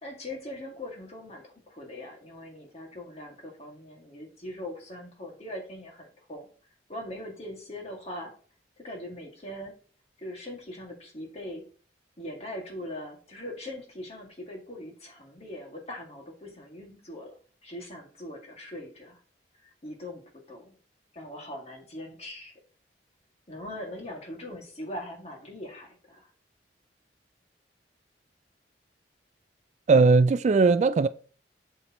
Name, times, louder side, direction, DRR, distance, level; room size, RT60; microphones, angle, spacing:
voice 1, 0.0-6.5 6.9-8.3 8.8-9.7 10.2-11.7 12.2-17.3 17.6-19.2 19.6-20.8 21.1-22.5 23.5-26.3, left 1 dB, 35° left, 2.0 m, -41 dB
voice 2, 29.9-31.1, right 4 dB, 40° right, 0.3 m, -19 dB
8.1 x 6.7 x 3.0 m
head